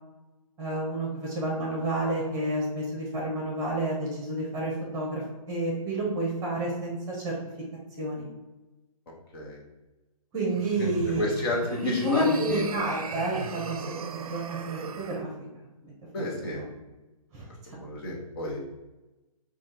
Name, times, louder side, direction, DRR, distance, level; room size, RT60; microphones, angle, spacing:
voice 1, 0.6-5.2 5.5-7.4 8.0-8.3 10.3-11.3 11.8-13.8 14.1-15.3 15.8-15.9 16.6-16.7 17.3-17.8, right 1 dB, 20° right, -3 dB, 1.2 m, -29 dB
sound 1, 10.5-15.2, right 5 dB, 75° right, 0.5 m, -38 dB
voice 2, 10.8-12.6 16.1-16.7 17.7-18.6, left 1 dB, 40° left, -3 dB, 1.1 m, -31 dB
4.5 x 2.5 x 4.4 m, 1.1 s
hypercardioid pair, 145°, 19 cm